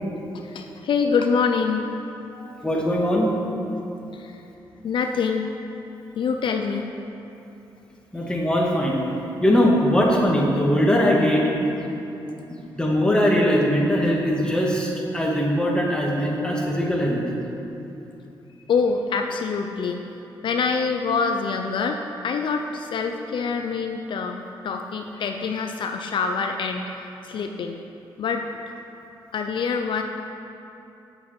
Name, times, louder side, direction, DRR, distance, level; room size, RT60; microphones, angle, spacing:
voice 1, 0.3-1.9 4.1-4.4 4.8-5.5 6.2-6.9 18.7-20.0 20.4-27.8 28.2-28.7 29.3-30.0, left 5 dB, 65° left, 4 dB, 0.6 m, -25 dB
voice 2, 2.3-3.3 8.1-9.0 9.4-11.4 12.8-17.2, equal, 10° left, -3 dB, 2.2 m, -21 dB
8.2 x 7.7 x 7.7 m, 2.9 s
cardioid pair, 80°, 9 cm